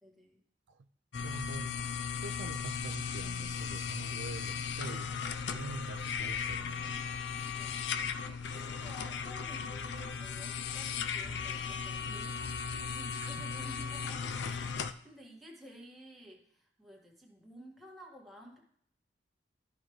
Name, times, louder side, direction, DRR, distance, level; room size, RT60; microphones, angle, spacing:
voice 1, 0.0-0.4 7.4-7.8 8.2-18.6, equal, ahead, -2 dB, 1.9 m, -53 dB
sound 1, 1.1-14.9, left 6 dB, 65° left, 0.5 m, -37 dB
voice 2, 1.2-1.8 2.2-6.9 13.2-13.3, right 3 dB, 75° right, 11 dB, 0.4 m, -46 dB
14.0 x 5.0 x 3.2 m, 0.64 s
head